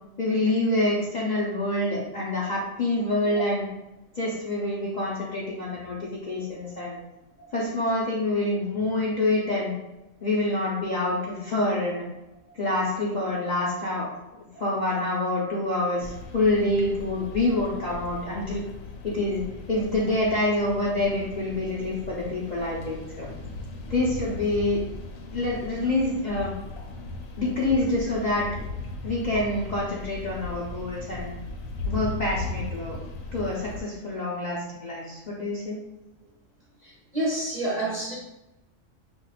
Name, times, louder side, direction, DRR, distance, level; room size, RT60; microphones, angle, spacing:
voice 1, 0.2-3.6 4.1-7.0 7.5-9.7 10.2-12.0 12.5-14.1 14.6-18.6 19.0-19.4 19.7-23.3 23.9-24.8 25.3-26.5 27.4-28.5 29.0-31.4 31.8-33.0 33.3-35.8, left 2 dB, 45° left, -6 dB, 0.6 m, -26 dB
sound 1, 16.0-33.8, left 2 dB, 85° left, 1.0 m, -38 dB
voice 2, 36.8-38.2, right 1 dB, 40° right, -5 dB, 0.7 m, -28 dB
5.4 x 2.4 x 2.4 m, 0.95 s
omnidirectional pair, 1.4 m